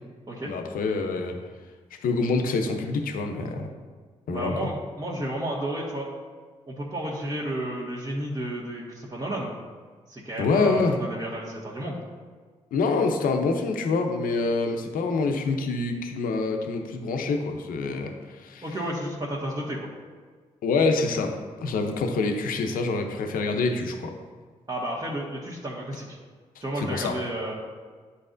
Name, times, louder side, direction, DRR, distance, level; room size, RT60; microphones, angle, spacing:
voice 1, 0.4-1.4 2.0-3.7 4.3-4.7 10.4-11.0 12.7-18.6 20.6-21.3 21.6-24.1 26.8-27.1, left 3 dB, 70° left, 4 dB, 0.7 m, -26 dB
voice 2, 4.3-6.1 6.7-9.5 10.1-12.0 18.6-19.9 24.7-26.2 26.6-27.5, right 1 dB, 25° right, -6 dB, 1.5 m, -32 dB
9.7 x 4.1 x 2.6 m, 1.5 s
hypercardioid pair, 45°, 15 cm